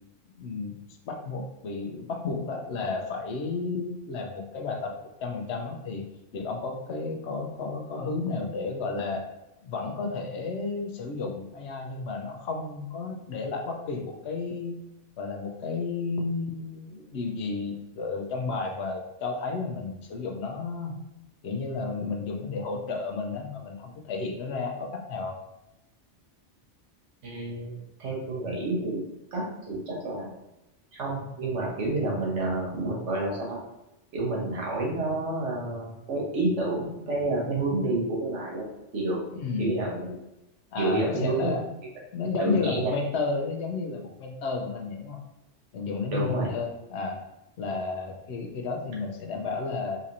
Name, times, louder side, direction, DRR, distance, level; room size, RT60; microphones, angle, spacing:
voice 1, 0.4-0.8 1.1-6.0 6.3-9.3 9.6-14.8 15.2-20.9 21.4-25.4 39.3-39.7 40.7-41.6 42.1-45.2 45.7-47.2 47.6-50.0, left 4 dB, 70° left, 2 dB, 0.8 m, -32 dB
voice 2, 27.2-29.0 29.3-30.3 30.9-33.6 34.1-38.6 38.9-39.2 39.6-40.1 40.8-41.5 42.4-43.0 46.1-46.5, right 2 dB, 75° right, -3 dB, 1.3 m, -29 dB
4.0 x 2.8 x 2.5 m, 0.92 s
omnidirectional pair, 1.2 m